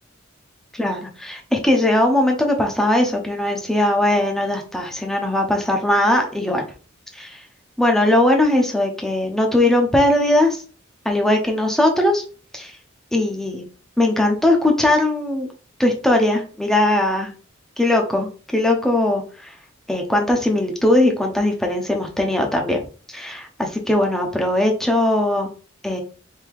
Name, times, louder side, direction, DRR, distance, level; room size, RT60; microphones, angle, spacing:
voice 1, 0.8-6.7 7.1-7.4 7.8-10.6 11.0-12.2 12.5-12.7 13.1-13.7 14.0-15.5 15.8-17.3 17.8-19.6 19.9-22.8 23.1-25.5 25.8-26.0, left 1 dB, ahead, 2 dB, 0.8 m, -19 dB
3.7 x 2.8 x 4.6 m, 0.38 s
head